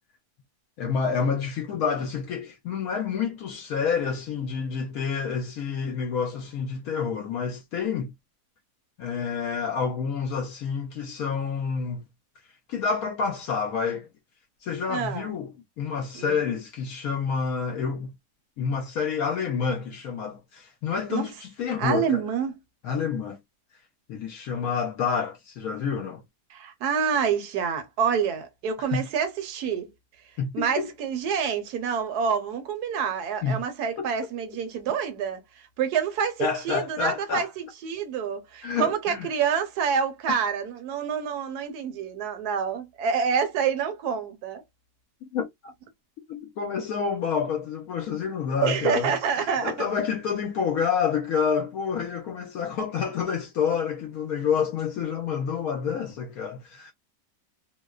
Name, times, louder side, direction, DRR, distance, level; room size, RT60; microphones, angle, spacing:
voice 1, 0.8-8.1 9.0-12.0 12.7-14.1 14.6-18.1 18.6-22.2 22.8-23.4 24.1-26.2 28.9-29.1 30.4-30.9 33.4-33.6 34.0-34.1 36.4-37.5 38.6-39.3 45.2-45.7 46.3-49.1 49.4-56.9, left 6 dB, 70° left, 1.0 m, -28 dB
voice 2, 14.9-15.4 16.1-16.4 21.1-21.3 21.8-22.6 26.5-29.9 30.5-44.6 48.6-49.8, right 7 dB, 75° right, 1.2 m, -27 dB
2.8 x 2.0 x 2.2 m
omnidirectional pair, 1.7 m